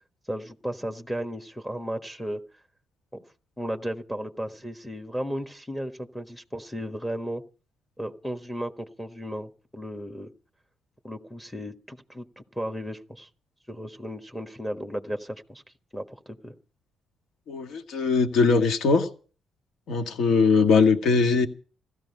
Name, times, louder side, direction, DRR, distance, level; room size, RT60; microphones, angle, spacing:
voice 1, 0.3-2.6 3.1-3.2 3.6-7.4 8.0-10.3 11.0-13.3 13.7-15.6 15.9-16.5, equal, 5° left, 1.4 m, -35 dB
voice 2, 17.5-19.1 19.9-21.5, left 4 dB, 70° left, 1.7 m, -21 dB
15.5 x 13.5 x 5.5 m
cardioid pair, 90°, 0 cm